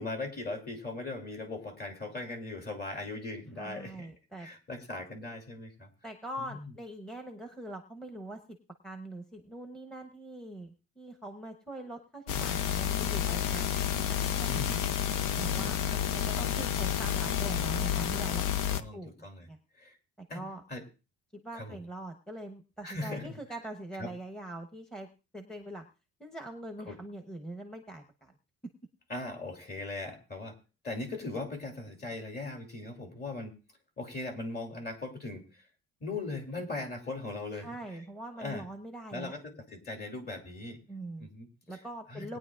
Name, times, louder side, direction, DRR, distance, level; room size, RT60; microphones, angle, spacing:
voice 1, 0.0-4.1 4.4-5.9 6.5-6.7 14.5-14.9 15.5-16.0 18.7-19.5 19.8-20.0 20.3-20.4 20.7-20.8 21.5-21.8 22.8-23.3 24.0-24.1 26.9-27.0 29.1-30.5 30.8-33.6 34.0-35.6 36.0-38.0 38.4-38.6 39.1-40.8 41.2-41.5 42.1-42.4, left 2 dB, 30° left, 3 dB, 2.6 m, -39 dB
voice 2, 3.6-4.5 6.0-8.6 8.8-13.7 14.1-14.8 15.3-15.8 16.1-19.6 20.2-20.6 21.3-25.1 25.3-25.8 26.2-28.3 37.5-39.3 40.9-41.3 41.7-42.4, right 1 dB, ahead, 3 dB, 0.9 m, -43 dB
sound 1, 12.3-18.8, left 9 dB, 75° left, 0.8 m, -30 dB
20.5 x 9.7 x 2.4 m, 0.31 s
cardioid pair, 145°, 31 cm